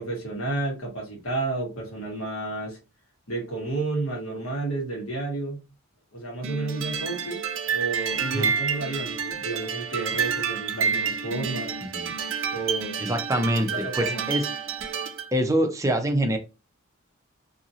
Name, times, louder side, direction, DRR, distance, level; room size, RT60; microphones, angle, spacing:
voice 1, 0.0-2.8 3.3-5.6 6.1-7.4 7.7-11.8 12.5-12.9 13.7-14.2, right 2 dB, 80° left, 1.5 m, -31 dB
sound 1, 6.4-15.3, right 6 dB, 65° right, 0.5 m, -29 dB
voice 2, 11.8-12.1 13.0-14.5 15.3-16.4, right 1 dB, 15° right, 0.5 m, -25 dB
2.8 x 2.7 x 2.7 m
head